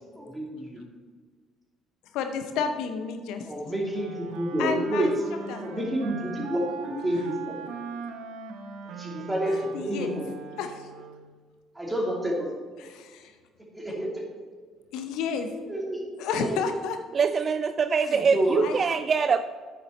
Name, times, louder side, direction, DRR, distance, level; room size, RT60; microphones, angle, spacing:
voice 1, 0.1-0.8 3.4-5.1 5.6-7.6 8.8-10.3 11.7-12.8 13.7-14.3 15.7-16.1 16.3-16.6 18.0-18.6, right 1 dB, 15° right, -1 dB, 2.8 m, -29 dB
voice 2, 2.1-3.5 4.6-5.1 5.5-5.8 9.5-10.2 10.6-10.9 12.8-13.4 14.9-15.5 16.2-17.0 18.0-18.1 18.6-18.7, left 6 dB, 70° left, 7 dB, 0.7 m, -31 dB
Wind instrument woodwind instrument, 3.9-11.4, right 6 dB, 70° right, 0.7 m, -40 dB
voice 3, 17.1-19.4, right 5 dB, 45° right, 11 dB, 0.3 m, -23 dB
9.0 x 6.7 x 4.3 m, 1.6 s
hypercardioid pair, 55°, 0 cm